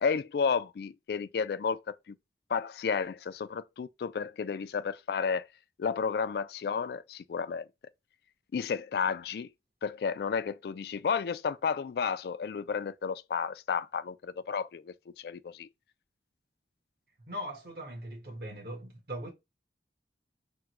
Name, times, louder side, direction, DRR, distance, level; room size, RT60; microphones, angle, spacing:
voice 1, 0.0-2.1 2.5-5.4 5.8-7.7 8.5-9.5 9.8-15.7, left 6 dB, 65° left, 0.3 m, -32 dB
voice 2, 17.3-19.3, equal, 60° right, 1.2 m, -40 dB
3.5 x 2.2 x 2.9 m
head